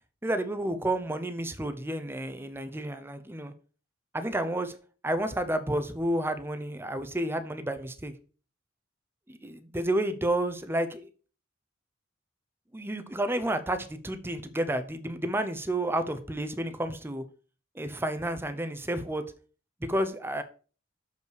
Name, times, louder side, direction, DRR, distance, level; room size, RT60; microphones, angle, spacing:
voice 1, 0.2-3.5 4.1-4.7 5.0-8.1 9.3-11.1 12.7-17.2 17.7-19.2 19.8-20.4, right 1 dB, 10° right, 0.6 m, -30 dB
6.7 x 5.4 x 4.6 m
head